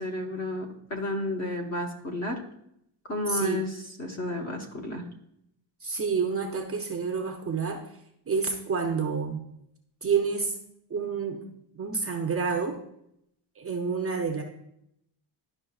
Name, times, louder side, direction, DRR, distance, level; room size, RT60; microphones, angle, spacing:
voice 1, 0.0-2.4 3.1-3.7 4.0-5.0, left 1 dB, 35° left, 2 dB, 1.1 m, -31 dB
voice 2, 3.3-3.6 5.8-7.8 8.3-9.4 10.0-10.5 10.9-11.5 11.7-12.8 13.6-14.4, right 5 dB, 30° right, 2 dB, 0.5 m, -28 dB
11.0 x 5.5 x 2.3 m, 0.76 s
cardioid pair, 160°, 47 cm